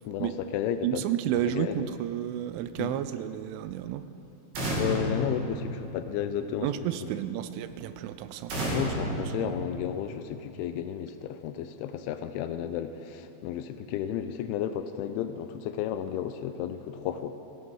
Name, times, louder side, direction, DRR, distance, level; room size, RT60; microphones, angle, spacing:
voice 1, 0.0-1.0 1.4-1.8 2.8-2.9 4.8-6.9 8.7-17.4, left 10 dB, 85° left, 9 dB, 2.8 m, -33 dB
voice 2, 0.8-4.0 6.6-9.5, right 11 dB, 85° right, 12 dB, 2.9 m, -32 dB
sound 1, 4.5-6.3 8.5-10.3, right 1 dB, 55° right, 4.3 m, -32 dB
16.5 x 14.5 x 5.4 m, 2.8 s
omnidirectional pair, 5.7 m